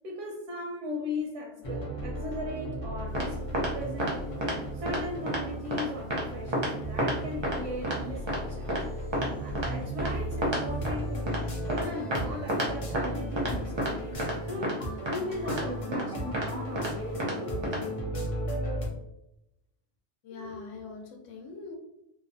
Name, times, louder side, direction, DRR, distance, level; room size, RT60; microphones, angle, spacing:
voice 1, 0.0-4.2 4.7-9.0 9.4-14.8 15.1-17.9, left 1 dB, 85° right, -1 dB, 0.9 m, -38 dB
sound 1, 1.6-18.9, right 1 dB, 60° left, 0.3 m, -35 dB
sound 2, 3.1-3.3 3.5-3.7 4.0-4.1 4.4-4.6 4.9-5.0 5.3-5.4 5.7-5.8 6.1-6.2 6.5-6.7 7.0-7.1 7.4-7.6 7.8-8.0 8.3-8.4 8.7-8.8 9.1-9.3 9.6-9.7 10.0-10.1 10.4-10.6 10.8-10.9 11.3-11.4 11.7-11.8 12.1-12.2 12.5-12.7 12.9-13.1 13.4-13.5 13.8-13.9 14.2-14.3 14.6-14.7 15.1-15.2 15.5-15.6 15.9-16.0 16.3-16.5 16.8-16.9 17.2-17.3 17.6-17.8, right 1 dB, 35° right, 0.4 m, -29 dB
voice 2, 20.2-21.8, left 4 dB, 85° left, 3 dB, 0.9 m, -42 dB
2.6 x 2.1 x 2.6 m, 0.86 s
omnidirectional pair, 1.2 m